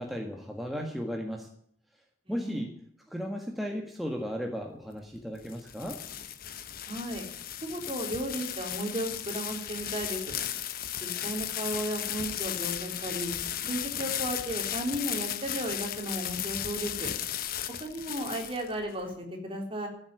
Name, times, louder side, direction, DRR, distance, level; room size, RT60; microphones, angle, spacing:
voice 1, 0.0-1.5 2.3-2.7 3.1-6.0, equal, ahead, 1 dB, 1.6 m, -35 dB
voice 2, 2.3-2.7 6.8-7.3 7.6-10.2 11.0-13.3 13.7-17.1 17.8-19.9, right 1 dB, 30° right, 2 dB, 3.8 m, -34 dB
sound 1, 5.1-19.0, left 10 dB, 55° left, 1.0 m, -35 dB
15.0 x 8.0 x 9.2 m, 0.67 s
head